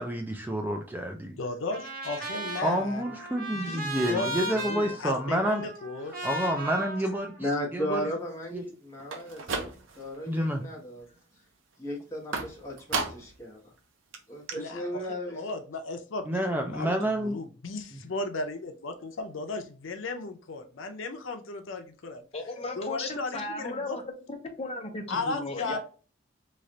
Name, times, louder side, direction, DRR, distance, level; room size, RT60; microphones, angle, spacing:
voice 1, 0.0-1.4 2.6-5.6 6.2-8.1 8.5-8.6 10.3-10.6 16.3-17.4 17.9-18.0, right 1 dB, 10° right, 0.4 m, -29 dB
voice 2, 1.4-3.1 3.5-4.3 4.6-6.2 14.5-16.9 17.2-22.2 22.8-24.0 25.1-25.8, left 3 dB, 80° left, 0.6 m, -35 dB
Trumpet, 1.7-7.9, right 1 dB, 50° right, 1.3 m, -37 dB
voice 3, 7.4-11.1 11.8-13.7 14.3-15.4, left 1 dB, 15° left, 1.2 m, -35 dB
sound 1, 9.0-10.2 10.5-11.0 12.3-13.4 13.8-13.9 14.1-14.2 14.5-14.6, right 4 dB, 85° right, 0.7 m, -34 dB
voice 4, 22.3-24.0 24.3-25.8, left 2 dB, 30° left, 0.8 m, -36 dB
3.2 x 2.4 x 3.9 m
head